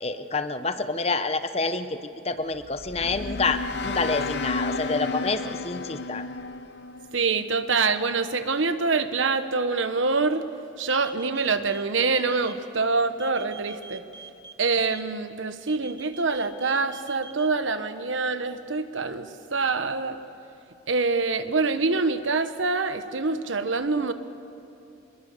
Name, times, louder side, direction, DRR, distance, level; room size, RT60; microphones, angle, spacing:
voice 1, 0.0-2.0 2.2-6.2, left 3 dB, 30° left, 10 dB, 0.9 m, -28 dB
sound 1, 2.5-7.7, left 3 dB, 60° left, 0.7 m, -32 dB
voice 2, 7.1-10.4 10.8-14.1 14.6-20.2 20.9-24.1, right 4 dB, 85° right, 10 dB, 1.3 m, -25 dB
sound 2, 10.9-12.5 13.2-15.0 15.7-17.5, right 5 dB, 20° right, 1.0 m, -44 dB
26.0 x 21.5 x 6.8 m, 2.9 s
head